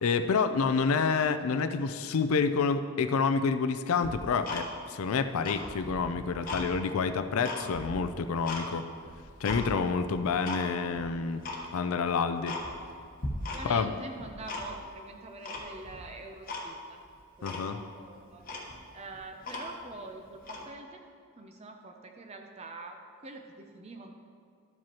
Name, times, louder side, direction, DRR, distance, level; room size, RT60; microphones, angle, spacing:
voice 1, 0.0-8.9 9.4-11.4 11.7-12.6 13.6-13.9 17.4-17.8, left 5 dB, 70° left, 10 dB, 0.4 m, -28 dB
Tick-tock, 4.0-5.0 5.3-6.7 7.1-8.6 9.0-9.6 10.1-10.6 10.9-11.0 11.4-11.6 12.0-12.1 12.4-12.9 13.2-13.9 14.1-14.9 15.4-16.0 16.5-16.7 17.0-17.1 17.4-17.7 18.1-18.2 18.4-19.9 20.4-20.6, left 2 dB, 40° left, 1.0 m, -38 dB
voice 2, 13.5-17.0 17.4-18.4 18.9-21.0 21.4-23.0 23.2-24.1, right 2 dB, 30° right, 4 dB, 0.5 m, -45 dB
12.0 x 7.6 x 2.9 m, 2.3 s
head